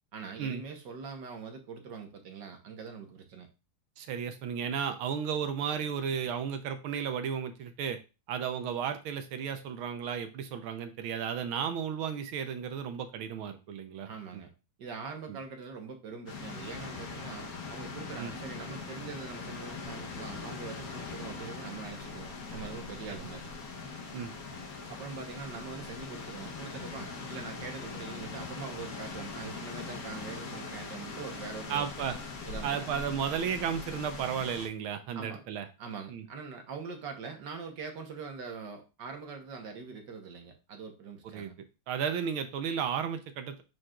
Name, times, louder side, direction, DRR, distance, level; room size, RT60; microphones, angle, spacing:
voice 1, 0.1-3.5 14.0-14.5 14.8-23.5 24.9-31.9 32.4-33.0 35.1-35.4 35.8-41.5, right 5 dB, 60° right, 4 dB, 1.5 m, -43 dB
voice 2, 4.0-8.0 8.3-14.1 14.3-14.4 15.3-15.4 18.2-18.3 24.1-24.3 31.7-32.2 32.6-35.7 36.1-36.2 41.3-41.5 41.9-43.6, right 7 dB, 75° right, 8 dB, 1.6 m, -34 dB
sound 1, 16.3-34.7, left 4 dB, 50° left, 1.2 m, -41 dB
8.8 x 4.6 x 2.4 m, 0.29 s
omnidirectional pair, 2.4 m